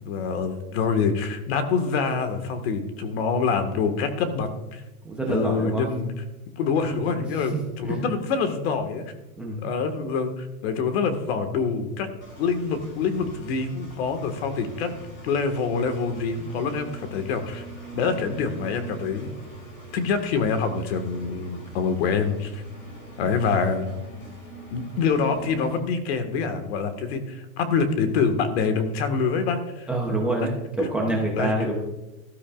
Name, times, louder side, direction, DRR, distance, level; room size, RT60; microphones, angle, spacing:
voice 1, 0.0-4.8 5.3-6.1 6.6-9.0 9.6-12.1 12.4-14.9 15.2-17.6 17.9-19.3 19.9-22.6 23.2-23.9 24.7-29.9 30.8-31.5, left 5 dB, 45° left, 8 dB, 1.7 m, -26 dB
voice 2, 5.0-5.9 7.4-7.5 7.8-8.0 9.4-9.7 29.9-31.8, right 2 dB, 5° right, -2 dB, 0.6 m, -26 dB
Engine, 12.2-25.8, right 2 dB, 25° left, 4.9 m, -43 dB
17.5 x 12.5 x 2.4 m, 1.1 s
supercardioid pair, 160°, 43 cm